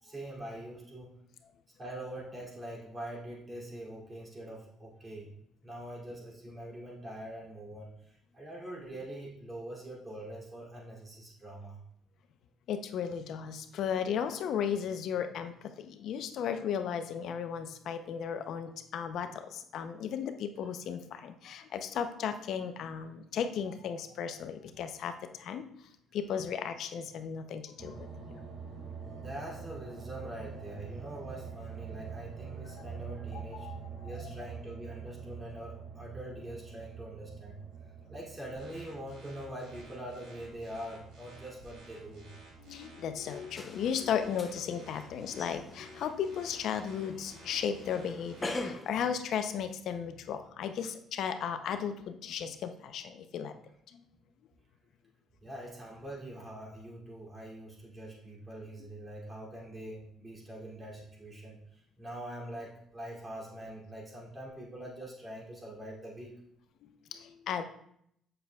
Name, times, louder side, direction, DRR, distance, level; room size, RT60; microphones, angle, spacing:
voice 1, 0.0-1.2 1.8-5.3 5.6-11.8 29.2-33.7 34.0-37.6 38.1-42.3 55.4-66.4, right 1 dB, 25° right, -4 dB, 2.6 m, -44 dB
voice 2, 12.7-25.6 26.1-28.1 28.7-28.8 32.9-33.0 33.3-34.1 42.6-53.5 53.9-54.0 66.8-67.6, left 8 dB, 65° left, 9 dB, 0.6 m, -35 dB
sound 1, 27.8-43.9, right 6 dB, 60° right, 1.1 m, -46 dB
sound 2, 38.5-48.6, right 2 dB, 85° right, 2.5 m, -55 dB
sound 3, 43.5-48.9, left 2 dB, 20° left, 0.7 m, -43 dB
7.7 x 6.4 x 2.3 m, 0.71 s
cardioid pair, 95°, 0 cm